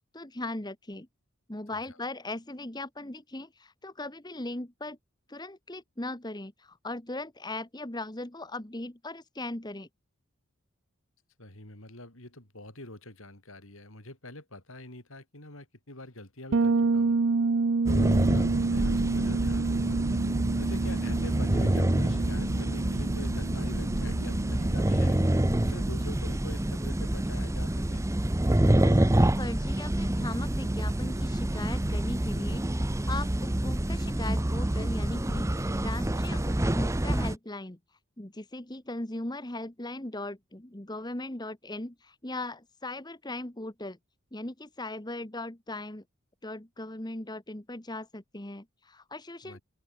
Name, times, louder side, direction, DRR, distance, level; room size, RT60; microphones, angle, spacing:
voice 1, 0.1-1.1 1.5-5.0 5.3-9.9 28.8-37.8 38.2-44.0 44.3-46.0 46.4-49.6, left 2 dB, 20° left, 1.4 m, -38 dB
voice 2, 11.4-17.2 17.8-20.0 20.6-25.2 25.6-28.1 49.4-49.6, left 1 dB, 70° left, 6.8 m, -45 dB
Bass guitar, 16.5-26.2, right 4 dB, 55° right, 0.5 m, -29 dB
sound 1, 17.9-37.4, right 1 dB, 15° right, 0.6 m, -27 dB
head